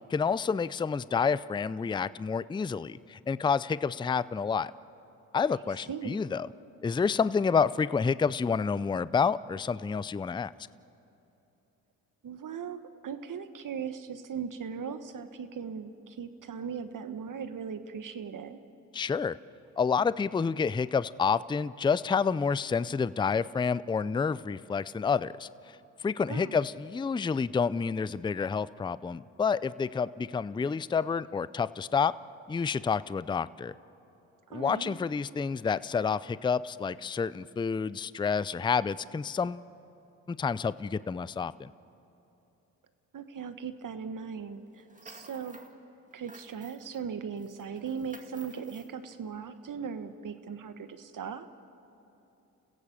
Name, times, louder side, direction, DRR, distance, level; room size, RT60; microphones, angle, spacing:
voice 1, 0.1-4.7 5.3-6.5 6.8-10.5 18.9-19.4 19.8-32.1 32.5-33.7 34.5-39.6 40.3-41.7, left 5 dB, 10° left, 18 dB, 0.4 m, -29 dB
voice 2, 5.9-6.2 12.2-18.6 26.3-26.6 34.5-35.0 43.1-45.6 46.1-51.5, right 6 dB, 55° right, 10 dB, 1.4 m, -38 dB
sound 1, 44.7-45.7 46.1-47.0 47.4-48.9, right 2 dB, 20° right, 2.3 m, -53 dB
29.5 x 16.0 x 7.3 m, 2.9 s
supercardioid pair, 55°, 39 cm